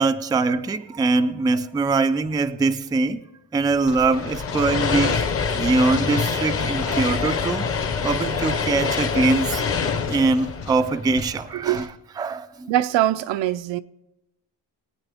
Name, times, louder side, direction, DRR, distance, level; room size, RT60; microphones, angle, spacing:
voice 1, 0.0-3.2 3.5-7.7 8.0-9.6 10.1-11.9 12.2-12.7, right 3 dB, 10° right, 0.3 m, -22 dB
sound 1, 3.6-11.9, left 5 dB, 65° left, 2.4 m, -37 dB
sound 2, 4.1-11.6, left 5 dB, 30° left, 0.8 m, -25 dB
voice 2, 11.5-11.9 12.7-13.8, right 13 dB, 75° right, 0.6 m, -22 dB
22.0 x 9.0 x 3.5 m
cardioid pair, 135°, 45 cm